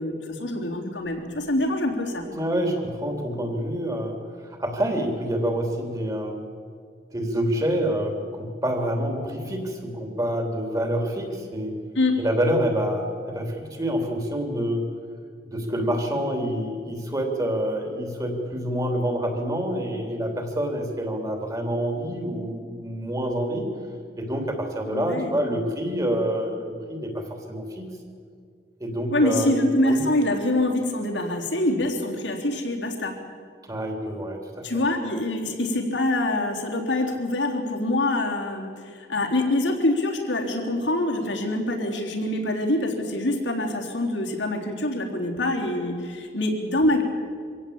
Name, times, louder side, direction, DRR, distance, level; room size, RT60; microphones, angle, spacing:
voice 1, 0.0-2.2 12.0-12.2 24.9-25.4 29.1-33.2 34.6-47.0, left 1 dB, 80° left, 1 dB, 3.7 m, -25 dB
voice 2, 2.1-6.4 7.1-11.8 12.2-14.9 15.5-23.7 24.2-27.9 28.8-30.0 33.6-34.8, equal, 20° right, 3 dB, 3.3 m, -27 dB
25.0 x 17.0 x 8.8 m, 2.2 s
head